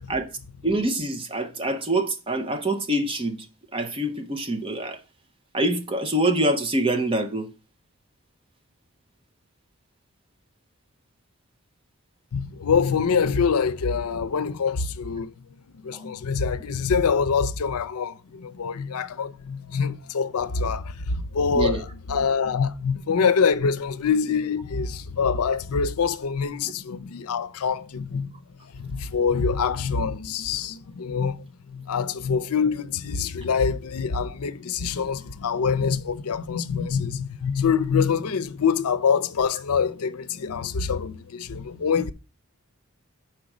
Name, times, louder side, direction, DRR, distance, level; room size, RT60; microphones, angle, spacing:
voice 1, 0.6-3.4 3.7-5.0 5.5-7.5 15.9-16.0 21.5-21.8, right 1 dB, 25° right, 0.6 m, -25 dB
voice 2, 12.3-15.3 15.7-28.3 28.7-31.4 31.7-42.1, left 6 dB, 85° left, 0.5 m, -25 dB
5.1 x 4.5 x 5.9 m
head